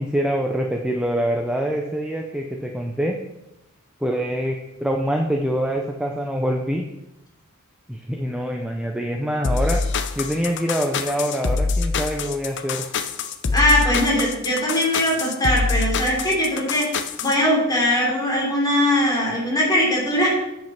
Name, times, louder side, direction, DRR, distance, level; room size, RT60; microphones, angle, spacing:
voice 1, 0.0-3.2 4.0-6.8 7.9-9.8 10.2-12.8, equal, 5° right, 2 dB, 0.6 m, -25 dB
sound 1, 9.4-17.4, left 4 dB, 60° left, 0.7 m, -25 dB
voice 2, 13.5-16.9 17.2-20.3, left 1 dB, 20° left, -4 dB, 3.3 m, -20 dB
9.1 x 5.3 x 5.8 m, 0.89 s
head